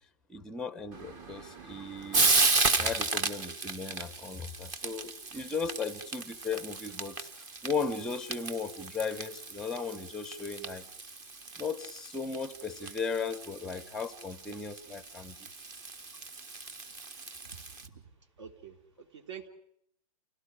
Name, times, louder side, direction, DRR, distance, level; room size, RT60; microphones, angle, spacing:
voice 1, 0.3-2.3 2.8-7.3 7.6-10.8 11.6-15.4, left 5 dB, 5° left, 12 dB, 1.0 m, -36 dB
Frying (food), 0.9-17.9, right 3 dB, 20° right, 1.5 m, -34 dB
voice 2, 17.4-18.1 18.4-19.5, right 7 dB, 50° right, 4 dB, 3.3 m, -47 dB
29.5 x 17.5 x 9.9 m, 0.70 s
hypercardioid pair, 165°, 19 cm